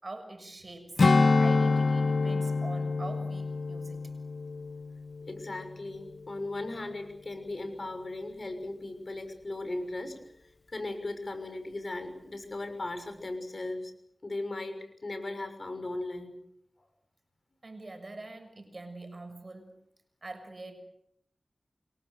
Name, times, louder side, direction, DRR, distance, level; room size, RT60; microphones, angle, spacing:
voice 1, 0.0-1.0 1.4-4.0 17.6-19.7 20.2-20.8, right 2 dB, 50° right, 7 dB, 6.7 m, -44 dB
Strum, 1.0-5.7 6.1-6.3, left 3 dB, 70° left, 1.7 m, -27 dB
voice 2, 5.3-10.2 10.7-13.9 14.2-14.8 15.0-16.3 16.8-16.9, left 2 dB, 50° left, 8 dB, 6.3 m, -37 dB
29.0 x 23.5 x 6.7 m, 0.71 s
wide cardioid pair, 60°, 0 cm